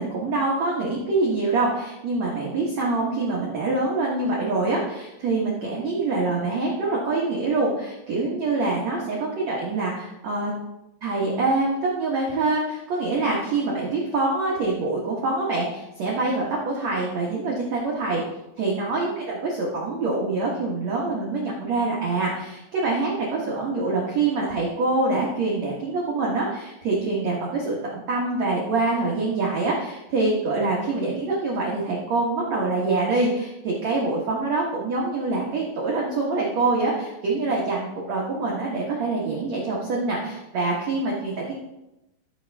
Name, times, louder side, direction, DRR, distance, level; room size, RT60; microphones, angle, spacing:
voice 1, 0.0-10.5 11.0-18.2 18.6-41.5, right 3 dB, 75° right, -4 dB, 1.5 m, -25 dB
14.0 x 7.3 x 3.5 m, 0.91 s
omnidirectional pair, 5.6 m